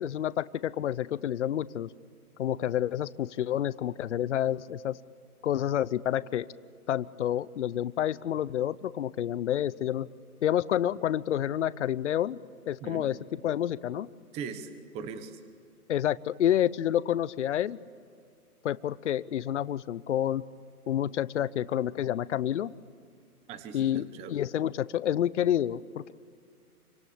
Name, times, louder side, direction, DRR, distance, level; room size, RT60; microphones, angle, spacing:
voice 1, 0.0-1.9 2.4-5.0 5.4-6.5 6.9-10.1 10.4-12.4 12.7-14.1 15.9-17.8 18.6-20.4 20.9-22.7 23.7-26.1, left 11 dB, 50° left, 18 dB, 0.8 m, -29 dB
voice 2, 14.3-15.4 23.5-24.4, right 6 dB, 15° right, 10 dB, 1.1 m, -40 dB
27.0 x 25.0 x 8.7 m, 2.3 s
hypercardioid pair, 150°, 46 cm